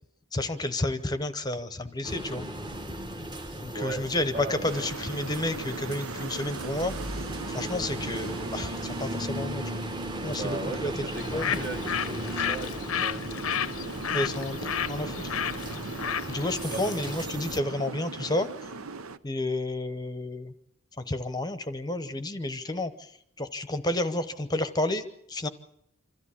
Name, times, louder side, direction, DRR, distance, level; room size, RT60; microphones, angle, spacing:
voice 1, 0.3-2.5 3.6-6.9 7.5-9.6 10.2-10.9 11.3-11.7 14.1-14.6 14.9-15.3 16.3-18.5 19.2-20.5 21.0-22.9 23.4-25.5, left 1 dB, 20° left, 11 dB, 0.8 m, -31 dB
sound 1, 2.0-17.6, right 1 dB, 20° right, 1.2 m, -37 dB
voice 2, 3.3-4.9 10.2-13.5 16.6-16.9, right 2 dB, 50° right, 5 dB, 2.2 m, -38 dB
sound 2, 4.6-19.2, right 4 dB, 90° right, 0.8 m, -40 dB
Bird, 11.1-17.2, left 8 dB, 85° left, 0.7 m, -33 dB
26.0 x 14.0 x 8.5 m, 0.73 s
head